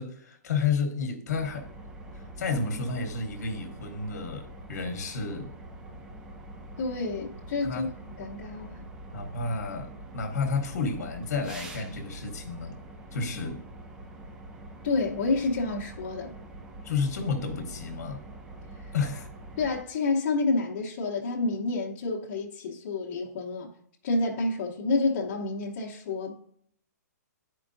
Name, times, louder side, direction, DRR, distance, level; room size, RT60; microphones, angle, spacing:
voice 1, 0.0-1.7 2.1-5.5 7.6-7.9 9.1-12.8 13.1-13.6 16.8-18.2 18.9-19.3, left 4 dB, 60° left, 1.1 m, -31 dB
sound 1, 1.3-19.8, right 1 dB, 10° right, 0.4 m, -45 dB
voice 2, 6.8-7.9 8.2-8.8 14.8-16.3 18.7-18.9 19.6-23.7 24.0-26.3, left 3 dB, 40° left, 0.8 m, -29 dB
11.0 x 4.5 x 2.6 m
hypercardioid pair, 170°, 9 cm